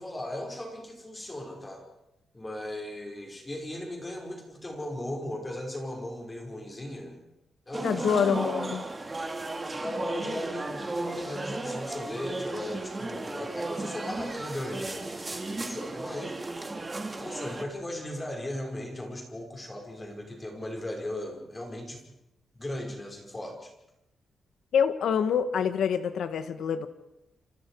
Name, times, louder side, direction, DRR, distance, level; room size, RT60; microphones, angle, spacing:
voice 1, 0.0-1.8 2.3-7.2 7.7-8.2 9.7-16.4 17.2-22.0 22.5-23.7, left 1 dB, 15° left, 2 dB, 5.4 m, -37 dB
sound 1, 7.7-17.6, right 2 dB, 20° right, 2.5 m, -35 dB
voice 2, 7.8-8.8 24.7-26.9, left 7 dB, 85° left, 10 dB, 1.8 m, -26 dB
28.5 x 27.5 x 4.9 m, 0.88 s
wide cardioid pair, 145°, 0 cm